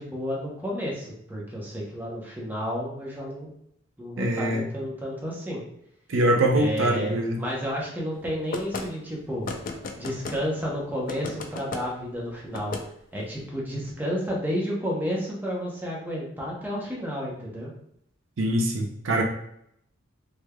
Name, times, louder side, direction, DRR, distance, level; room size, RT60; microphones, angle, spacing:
voice 1, 0.0-3.5 4.0-5.6 6.5-9.5 10.0-12.7 13.1-17.7, equal, 10° right, -3 dB, 0.8 m, -31 dB
voice 2, 4.2-4.6 6.1-7.4 18.4-19.2, right 1 dB, 80° right, 2 dB, 0.6 m, -23 dB
sound 1, 8.5-8.9 9.4-10.4 11.1-11.8 12.5-12.8, left 3 dB, 45° left, 0.4 m, -34 dB
3.4 x 3.2 x 2.2 m, 0.72 s
head